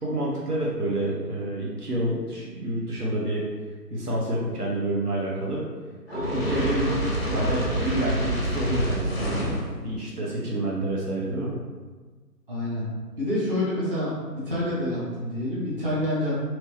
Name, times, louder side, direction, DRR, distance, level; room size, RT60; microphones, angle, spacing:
voice 1, 0.0-3.5 3.9-5.7 6.1-9.5 9.8-11.5, right 1 dB, 65° right, -4 dB, 1.0 m, -28 dB
Fire, 6.1-9.7, equal, 40° left, 0.5 m, -27 dB
voice 2, 12.5-12.9 13.2-14.1 14.4-16.3, left 1 dB, 35° right, -8 dB, 1.0 m, -27 dB
3.0 x 3.0 x 2.9 m, 1.4 s
figure-of-eight pair, 150°, 49 cm